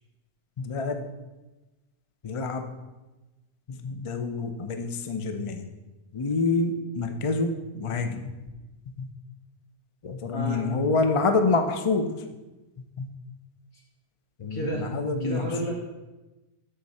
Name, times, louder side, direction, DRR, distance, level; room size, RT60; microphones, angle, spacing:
voice 1, 0.6-1.1 2.2-2.7 3.7-5.6 6.1-8.3 9.0-9.1 10.0-12.2 13.0-13.1 14.4-15.5, left 3 dB, 35° left, 7 dB, 0.5 m, -27 dB
voice 2, 10.3-10.6 14.5-15.7, right 1 dB, 75° left, -3 dB, 2.8 m, -32 dB
13.5 x 5.6 x 4.2 m, 1.1 s
omnidirectional pair, 1.5 m